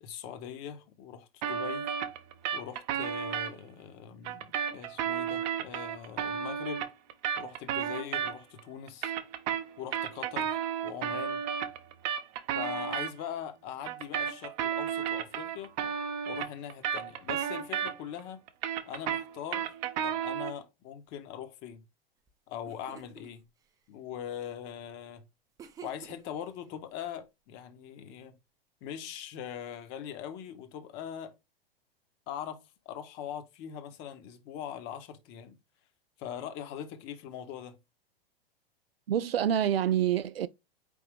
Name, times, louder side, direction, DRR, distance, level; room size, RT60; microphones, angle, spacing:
voice 1, 0.0-2.0 2.5-6.9 7.4-9.1 9.8-11.4 12.5-15.7 16.3-18.4 18.9-19.8 20.0-21.8 22.5-23.4 23.9-25.2 25.8-28.3 28.8-31.3 32.3-35.6 36.2-37.8, left 9 dB, 35° left, 0.9 m, -41 dB
sound 1, 1.4-3.5 4.2-8.6 8.9-13.1 13.8-18.2 18.5-20.6, right 8 dB, 45° right, 0.8 m, -33 dB
sound 2, 22.3-22.4 22.6-23.3 25.6-26.4, right 7 dB, 10° right, 0.4 m, -49 dB
voice 2, 39.1-40.5, right 10 dB, 75° right, 0.5 m, -27 dB
4.6 x 3.4 x 3.3 m
figure-of-eight pair, 95°, 30 cm